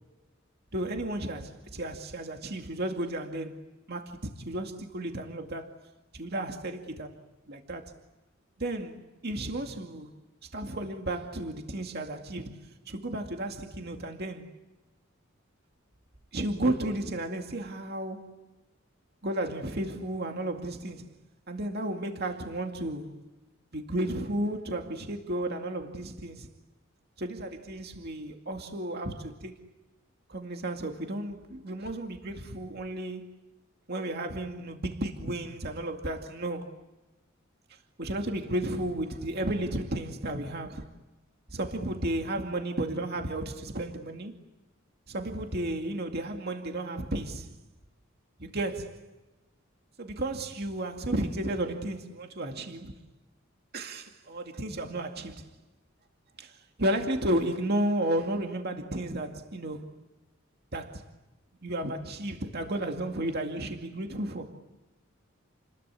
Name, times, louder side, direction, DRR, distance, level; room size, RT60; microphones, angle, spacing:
voice 1, 0.7-5.7 6.1-7.2 7.5-7.9 8.6-10.1 10.5-12.6 12.9-14.5 16.3-18.4 19.2-21.1 21.5-23.2 23.7-26.5 27.2-29.6 30.3-33.3 33.9-36.7 38.0-40.9 41.5-44.3 45.1-47.5 48.4-49.1 50.0-53.0 53.7-55.5 56.4-60.1 60.7-61.0 61.6-64.6, right 1 dB, 50° right, 2.3 m, -33 dB
30.0 x 21.5 x 8.3 m
head